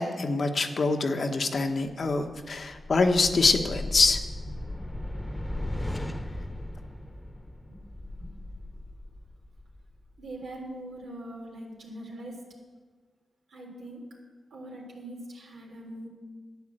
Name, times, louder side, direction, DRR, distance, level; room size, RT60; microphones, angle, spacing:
voice 1, 0.0-4.2, left 3 dB, 60° left, 5 dB, 1.3 m, -25 dB
sound 1, 2.4-10.3, left 1 dB, 15° left, 1.2 m, -37 dB
voice 2, 10.2-12.4 13.5-14.0 14.5-16.1, right 1 dB, 85° right, -2 dB, 3.5 m, -42 dB
11.5 x 8.7 x 7.8 m, 1.5 s
cardioid pair, 50°, 0 cm